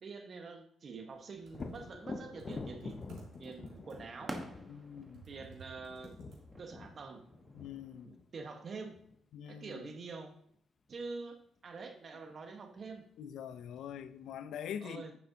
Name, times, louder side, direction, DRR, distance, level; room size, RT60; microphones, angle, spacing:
voice 1, 0.0-3.0 3.4-4.4 5.3-6.2 6.6-7.2 8.0-9.0 9.5-10.3 10.9-13.0 14.8-15.1, right 4 dB, 45° right, 1.2 m, -46 dB
Computer keyboard, 1.4-6.8, right 5 dB, 75° right, 2.8 m, -57 dB
Thunder, 1.5-9.2 12.8-12.9 13.4-14.3, left 4 dB, 35° left, 0.7 m, -47 dB
sound 1, 2.4-8.1, right 1 dB, 20° right, 1.2 m, -50 dB
voice 2, 4.7-5.2 7.5-8.1 9.3-9.8 13.2-15.0, left 9 dB, 80° left, 0.5 m, -44 dB
9.5 x 6.7 x 2.8 m
cardioid pair, 90°, 0 cm